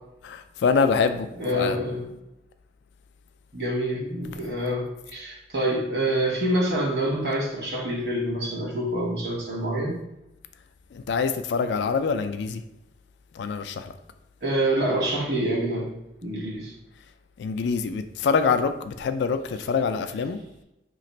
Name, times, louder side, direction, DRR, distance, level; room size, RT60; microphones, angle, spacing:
voice 1, 0.2-1.8 10.9-12.6 13.4-13.9 17.4-20.4, left 5 dB, 80° left, 9 dB, 0.3 m, -25 dB
voice 2, 1.4-2.1 3.5-10.0 14.4-15.9 16.2-16.7, right 1 dB, 60° right, -3 dB, 1.3 m, -26 dB
3.1 x 2.5 x 4.1 m, 0.89 s
head